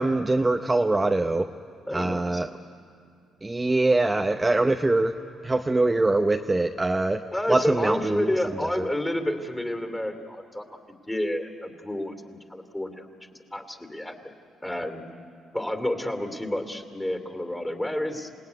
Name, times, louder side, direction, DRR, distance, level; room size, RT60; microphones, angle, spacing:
voice 1, 0.0-1.5 1.9-2.5 3.4-5.1 5.4-7.2 7.5-8.3 8.8-8.9, right 2 dB, 20° right, 5 dB, 0.7 m, -23 dB
voice 2, 1.8-2.5 7.3-10.7 11.1-13.1 13.5-14.3 14.6-15.0 15.5-18.3, left 1 dB, 10° left, 7 dB, 2.6 m, -30 dB
28.5 x 18.0 x 9.5 m, 2.4 s
cardioid pair, 90°, 0 cm